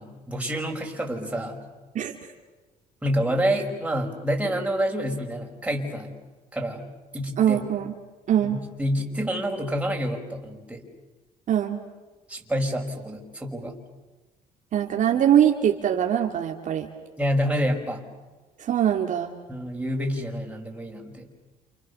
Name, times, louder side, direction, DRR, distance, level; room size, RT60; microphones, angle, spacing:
voice 1, 0.0-1.6 3.0-6.1 6.5-6.9 7.1-7.6 8.4-10.8 12.3-13.8 17.2-18.0 19.5-21.3, equal, 10° right, 1 dB, 5.5 m, -28 dB
voice 2, 7.4-7.9 8.3-8.6 11.5-11.8 14.7-16.9 18.6-19.3, right 10 dB, 55° right, 2 dB, 2.5 m, -22 dB
29.0 x 29.0 x 7.0 m, 1.2 s
cardioid pair, 95°, 15 cm